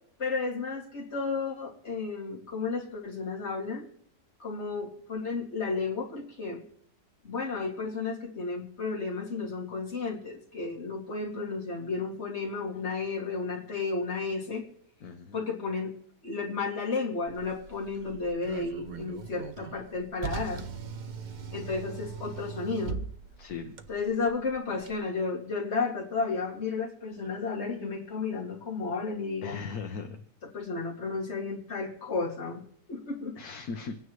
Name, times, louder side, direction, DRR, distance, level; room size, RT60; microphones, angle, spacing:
voice 1, 0.2-3.9 4.4-6.6 7.2-14.6 15.3-15.9 16.2-20.6 21.5-23.0 23.9-29.6 30.5-32.6 32.9-33.4, left 4 dB, 40° left, -2 dB, 2.5 m, -33 dB
voice 2, 15.0-15.4 23.4-23.7 29.4-30.2 33.4-34.0, left 5 dB, 65° left, 5 dB, 1.3 m, -38 dB
Car, 17.3-24.9, right 6 dB, 80° right, 0.4 m, -41 dB
26.0 x 9.4 x 3.1 m, 0.69 s
omnidirectional pair, 1.9 m